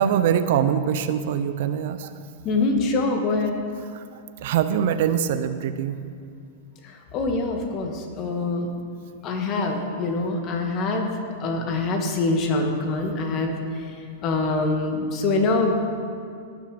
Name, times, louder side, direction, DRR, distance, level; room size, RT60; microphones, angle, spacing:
voice 1, 0.0-2.2 3.9-6.0, right 8 dB, 60° right, 11 dB, 0.6 m, -23 dB
voice 2, 2.4-3.5 6.8-8.7 9.2-11.1 11.4-14.0 14.2-15.8, left 3 dB, 40° left, 3 dB, 2.0 m, -24 dB
18.0 x 6.5 x 5.2 m, 2.3 s
hypercardioid pair, 105°, 0 cm